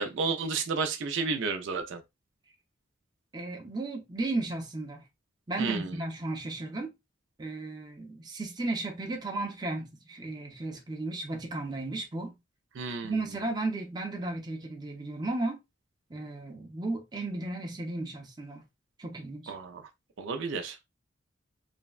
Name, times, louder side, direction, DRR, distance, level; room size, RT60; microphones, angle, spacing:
voice 1, 0.0-2.0 5.6-6.0 12.8-13.2 19.5-19.8 20.2-20.8, right 4 dB, 70° right, 0.4 m, -32 dB
voice 2, 3.3-5.1 5.5-6.9 7.4-12.3 13.0-15.6 16.1-18.6 19.0-19.5, right 2 dB, 20° right, 0.5 m, -34 dB
3.3 x 2.1 x 2.3 m
head